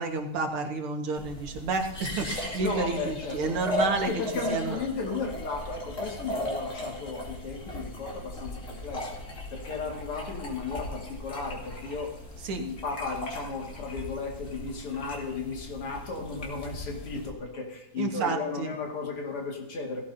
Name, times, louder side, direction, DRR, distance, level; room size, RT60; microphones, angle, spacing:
voice 1, 0.0-4.1 4.5-4.8 12.4-12.6 18.0-18.7, right 4 dB, 80° right, 3 dB, 2.5 m, -30 dB
sound 1, 1.2-17.3, left 1 dB, 35° left, 2.8 m, -37 dB
voice 2, 2.6-3.4 3.9-9.2 9.5-12.1 12.5-20.0, left 4 dB, 90° left, 0 dB, 3.1 m, -35 dB
17.5 x 16.5 x 2.8 m, 0.80 s
omnidirectional pair, 2.4 m